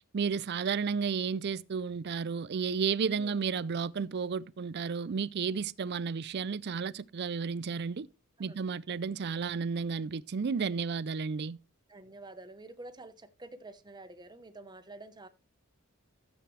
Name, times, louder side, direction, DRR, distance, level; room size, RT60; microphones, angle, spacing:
voice 1, 0.1-8.1 8.4-11.6, right 5 dB, 50° right, 0.4 m, -32 dB
voice 2, 3.1-3.4 8.5-8.6 11.9-15.3, right 2 dB, 20° right, 1.0 m, -48 dB
14.5 x 7.6 x 3.3 m
head